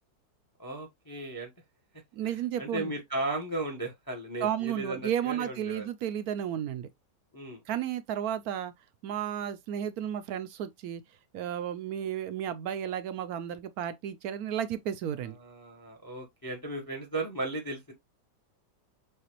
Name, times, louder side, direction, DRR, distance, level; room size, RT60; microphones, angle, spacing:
voice 1, 0.6-1.5 2.2-5.8 7.3-7.6 15.2-17.9, right 2 dB, 20° left, 0.7 m, -36 dB
voice 2, 2.1-2.9 4.4-6.9 7.7-8.7 9.0-11.0 11.3-15.4, right 10 dB, 70° right, 0.9 m, -33 dB
6.6 x 2.4 x 2.9 m
omnidirectional pair, 1.9 m